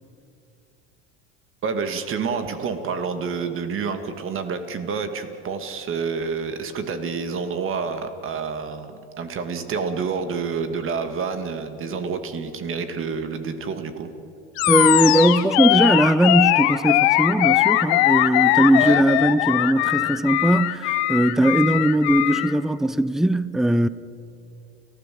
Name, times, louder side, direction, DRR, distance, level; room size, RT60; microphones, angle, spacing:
voice 1, 1.6-14.1 18.8-19.0, right 5 dB, 40° right, 2.3 m, -28 dB
Animal, 14.6-22.5, left 17 dB, 75° left, 1.1 m, -20 dB
voice 2, 14.7-23.9, right 1 dB, ahead, 0.5 m, -19 dB
30.0 x 15.0 x 7.8 m
supercardioid pair, 110°, 33 cm